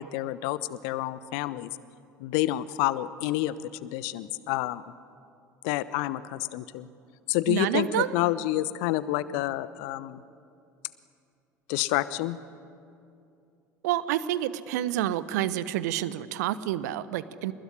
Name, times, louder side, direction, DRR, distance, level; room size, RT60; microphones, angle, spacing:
voice 1, 0.0-1.7 2.2-3.5 3.8-4.8 5.6-6.9 7.3-10.2 11.7-12.4, left 15 dB, 55° left, 16 dB, 1.0 m, -29 dB
voice 2, 7.5-8.2 13.8-17.5, right 12 dB, 60° right, 16 dB, 1.0 m, -28 dB
26.5 x 20.5 x 9.9 m, 2.6 s
figure-of-eight pair, 65°, 10 cm